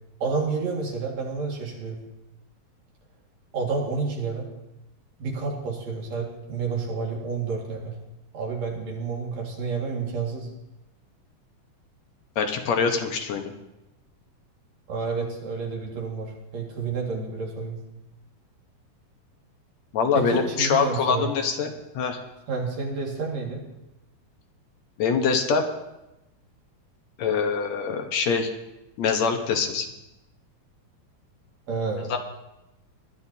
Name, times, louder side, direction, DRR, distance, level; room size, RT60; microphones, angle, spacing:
voice 1, 0.2-2.0 3.5-4.5 5.2-8.0 8.3-10.5 14.9-17.8 20.1-21.3 22.5-23.6 31.7-32.1, right 4 dB, 70° right, -1 dB, 3.3 m, -30 dB
voice 2, 12.4-13.5 19.9-22.2 25.0-25.7 27.2-28.5 29.0-29.9 32.1-32.2, left 5 dB, 70° left, 4 dB, 2.3 m, -24 dB
21.5 x 11.5 x 2.8 m, 0.94 s
omnidirectional pair, 3.3 m